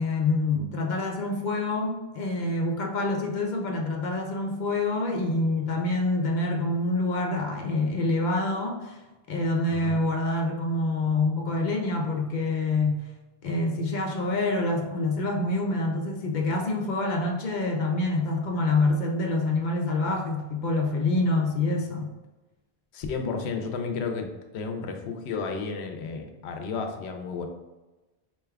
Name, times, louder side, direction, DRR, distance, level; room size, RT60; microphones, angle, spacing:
voice 1, 0.0-9.0 9.3-13.0 13.4-22.1, left 2 dB, 55° left, 1 dB, 0.6 m, -26 dB
voice 2, 9.7-10.0 22.9-27.5, left 4 dB, 80° left, 4 dB, 0.8 m, -32 dB
4.4 x 3.3 x 2.3 m, 1.1 s
omnidirectional pair, 1.1 m